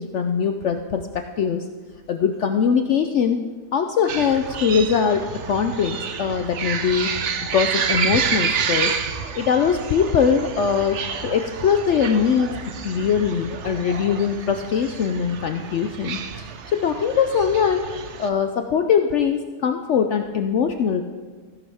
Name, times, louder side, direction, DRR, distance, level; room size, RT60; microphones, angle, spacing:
voice 1, 0.0-1.7 2.1-3.4 3.7-7.1 7.5-9.0 9.4-12.5 12.8-16.2 16.7-17.8 18.2-21.0, left 7 dB, 65° left, 6 dB, 0.7 m, -21 dB
sound 1, 4.1-18.3, right 6 dB, 55° right, 0.9 m, -29 dB
15.5 x 10.5 x 3.5 m, 1.5 s
omnidirectional pair, 1.7 m